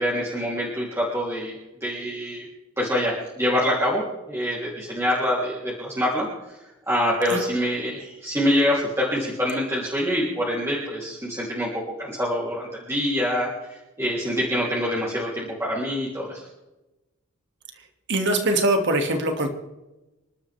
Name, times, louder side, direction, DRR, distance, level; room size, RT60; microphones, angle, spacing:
voice 1, 0.0-1.5 1.8-2.5 2.8-6.3 6.9-11.7 12.0-13.5 14.0-16.4, equal, 10° right, -5 dB, 3.5 m, -25 dB
voice 2, 18.1-19.5, right 1 dB, 55° right, 4 dB, 2.5 m, -22 dB
28.0 x 12.5 x 3.6 m, 1.0 s
head